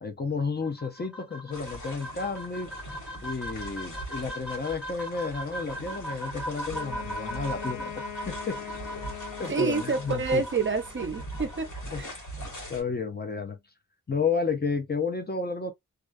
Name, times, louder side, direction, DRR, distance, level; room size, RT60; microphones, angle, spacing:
voice 1, 0.0-2.7 3.2-8.6 9.4-10.4 11.9-13.6 14.1-15.7, left 4 dB, 30° left, 0.5 m, -32 dB
sound 1, 0.6-11.6, right 1 dB, 5° right, 0.9 m, -39 dB
sound 2, 1.5-12.8, right 1 dB, 65° left, 1.2 m, -42 dB
Wind instrument woodwind instrument, 6.7-10.4, left 11 dB, 80° left, 0.5 m, -41 dB
voice 2, 9.5-11.7 12.0-12.1, right 4 dB, 40° right, 0.5 m, -28 dB
2.3 x 2.2 x 2.4 m
wide cardioid pair, 75°, 32 cm